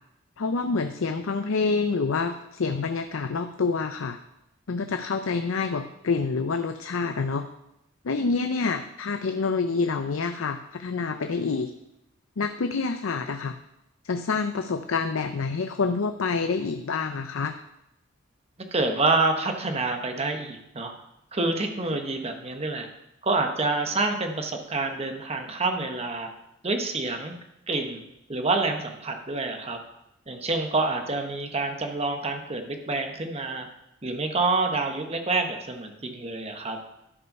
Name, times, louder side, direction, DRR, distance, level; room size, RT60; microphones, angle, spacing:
voice 1, 0.4-4.2 4.7-7.5 8.0-11.7 12.4-13.6 14.0-17.6, left 4 dB, 75° left, 7 dB, 0.5 m, -27 dB
voice 2, 18.7-20.9 21.3-22.9 23.2-26.3 26.6-27.3 27.7-28.0 28.3-29.8 30.3-33.7 34.0-36.8, right 3 dB, 30° right, 5 dB, 1.1 m, -27 dB
12.5 x 5.5 x 5.4 m, 0.86 s
head